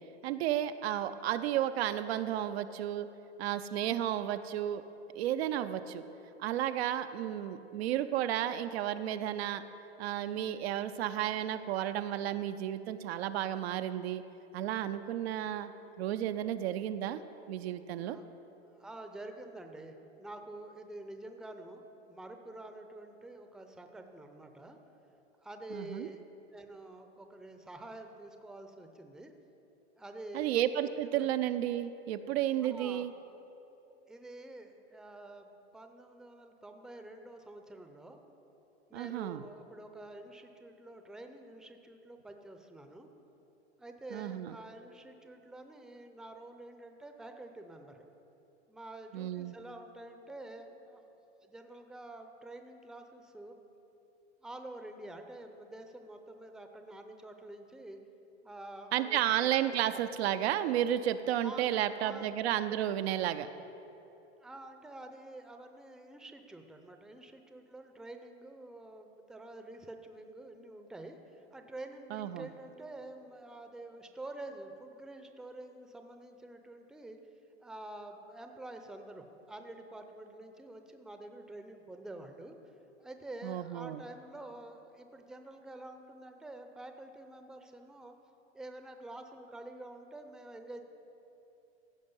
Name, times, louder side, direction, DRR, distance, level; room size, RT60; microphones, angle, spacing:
voice 1, 0.2-3.1 3.4-4.8 5.1-6.0 6.4-9.6 10.0-14.2 14.5-15.7 16.0-17.2 17.5-18.2 25.7-26.1 30.3-33.1 38.9-39.4 44.1-44.5 49.1-49.5 58.9-63.5 72.1-72.5 83.4-84.0, right 11 dB, 70° right, 10 dB, 0.5 m, -32 dB
voice 2, 18.7-21.8 22.1-24.8 25.4-26.2 26.5-29.3 30.0-30.6 31.1-31.3 32.6-33.1 34.1-38.2 38.9-43.1 43.8-48.0 48.7-51.0 51.4-53.6 54.4-58.0 58.4-59.5 59.9-60.0 61.4-62.4 64.4-77.2 77.6-82.6 83.0-88.1 88.5-90.8, right 2 dB, ahead, 6 dB, 0.6 m, -48 dB
15.0 x 5.1 x 5.4 m, 3.0 s
hypercardioid pair, 105°, 33 cm